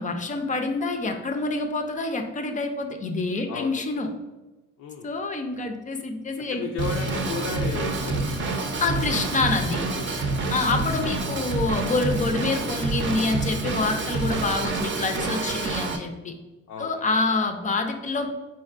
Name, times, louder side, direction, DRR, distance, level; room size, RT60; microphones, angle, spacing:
voice 1, 0.0-4.1 5.0-6.7 8.8-9.9 10.5-16.3 16.8-18.3, left 3 dB, 25° left, 5 dB, 0.5 m, -27 dB
voice 2, 3.5-3.8 4.8-5.1 6.5-9.3 10.2-10.5 10.7-11.1 15.2-15.7 16.7-17.3, left 4 dB, 75° left, 1 dB, 0.5 m, -35 dB
Drum kit / Drum, 6.8-16.0, right 3 dB, 40° right, 0.6 m, -27 dB
4.4 x 3.7 x 2.4 m, 1.1 s
cardioid pair, 100°, 29 cm